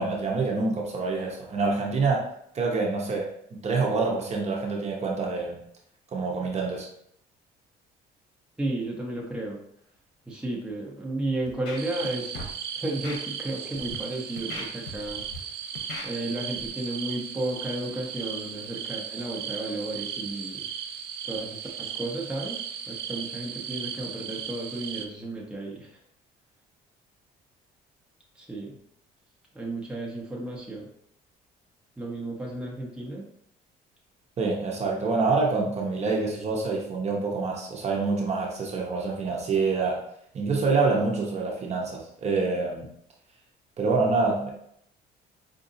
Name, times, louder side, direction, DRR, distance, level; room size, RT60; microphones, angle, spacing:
voice 1, 0.0-2.3 2.5-5.6 6.1-6.9 34.4-40.0 40.3-42.9 43.8-44.5, right 3 dB, 40° right, -1 dB, 0.8 m, -26 dB
voice 2, 8.6-9.6 10.3-12.4 12.8-15.2 16.0-20.6 21.2-25.9 28.4-28.7 29.5-30.9 32.0-33.2, right 2 dB, 5° right, -3 dB, 0.9 m, -33 dB
Scratching (performance technique), 11.5-12.1 12.3-12.5 13.0-13.2 13.7-14.0 14.4-15.4 15.8-16.1 16.6-16.7, left 3 dB, 90° left, 0.8 m, -38 dB
sound 1, 11.8-25.1, right 8 dB, 75° right, 0.5 m, -36 dB
5.0 x 2.6 x 2.7 m, 0.72 s
cardioid pair, 110°, 17 cm